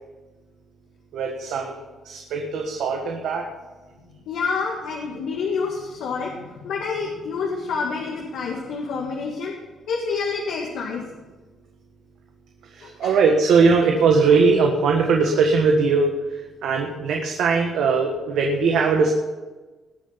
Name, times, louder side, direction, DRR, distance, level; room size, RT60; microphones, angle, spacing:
voice 1, 1.1-1.8 2.0-3.5 12.7-19.1, right 4 dB, 80° right, 2 dB, 1.6 m, -20 dB
voice 2, 4.3-9.5 9.9-11.0 12.8-13.1, left 5 dB, 80° left, -2 dB, 2.1 m, -28 dB
19.5 x 6.8 x 5.9 m, 1.2 s
cardioid pair, 90°, 0 cm